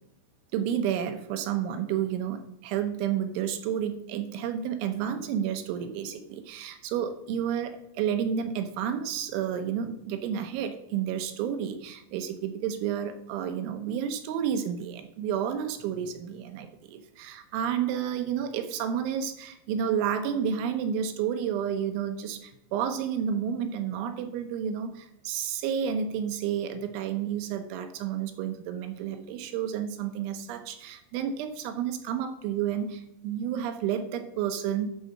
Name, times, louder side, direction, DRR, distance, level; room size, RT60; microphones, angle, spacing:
voice 1, 0.5-34.9, right 8 dB, 80° right, 7 dB, 3.1 m, -31 dB
12.0 x 4.9 x 6.5 m, 0.83 s
omnidirectional pair, 5.8 m